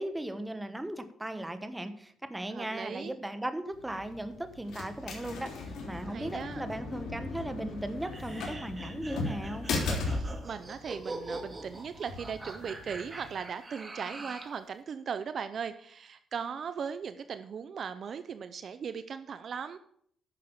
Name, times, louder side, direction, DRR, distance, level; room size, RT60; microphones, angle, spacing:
voice 1, 0.0-9.7, right 1 dB, 10° right, 10 dB, 1.3 m, -37 dB
voice 2, 2.5-3.1 6.1-6.6 10.0-19.8, right 6 dB, 55° right, 11 dB, 0.7 m, -38 dB
sound 1, 3.7-13.3, left 3 dB, 70° left, 3.6 m, -38 dB
sound 2, 8.0-14.6, right 2 dB, 25° right, 2.2 m, -43 dB
11.0 x 6.6 x 7.1 m, 0.64 s
cardioid pair, 90°, 0 cm